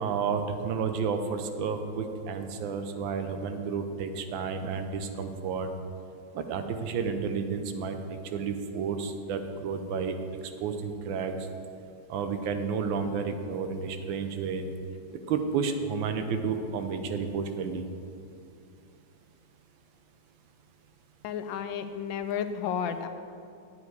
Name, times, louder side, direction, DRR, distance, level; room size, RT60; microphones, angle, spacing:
voice 1, 0.0-5.7 6.3-8.0 8.3-10.1 10.6-11.4 12.1-14.7 15.3-17.8, right 5 dB, 90° right, 7 dB, 1.5 m, -31 dB
voice 2, 21.2-23.1, left 8 dB, 90° left, 10 dB, 1.4 m, -32 dB
9.6 x 8.2 x 4.7 m, 2.6 s
omnidirectional pair, 2.1 m